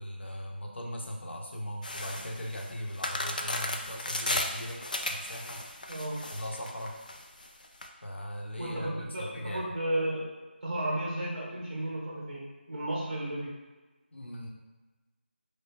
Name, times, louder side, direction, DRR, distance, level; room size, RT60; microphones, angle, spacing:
voice 1, 0.0-5.6 6.3-7.0 8.0-9.7 14.1-14.5, equal, 75° left, 0 dB, 0.9 m, -39 dB
sound 1, 1.8-7.9, left 2 dB, 45° left, 0.4 m, -35 dB
voice 2, 8.6-10.3 10.6-13.5, right 1 dB, 35° right, -5 dB, 1.4 m, -33 dB
5.1 x 2.1 x 4.1 m, 1.2 s
figure-of-eight pair, 175°, 6 cm